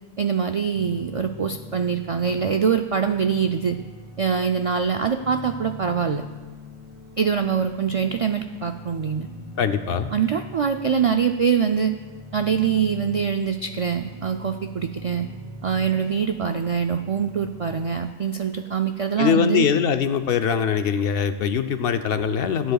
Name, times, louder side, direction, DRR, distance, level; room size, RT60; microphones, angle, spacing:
voice 1, 0.2-3.8 4.2-6.2 7.2-9.3 10.1-11.9 12.3-15.3 15.6-19.7, right 7 dB, 60° right, 5 dB, 0.3 m, -24 dB
sound 1, 0.7-18.0, left 1 dB, 15° right, 0.9 m, -42 dB
voice 2, 9.6-10.1 19.2-22.7, left 7 dB, 70° left, 9 dB, 0.8 m, -22 dB
21.5 x 7.9 x 2.3 m, 1.3 s
omnidirectional pair, 1.1 m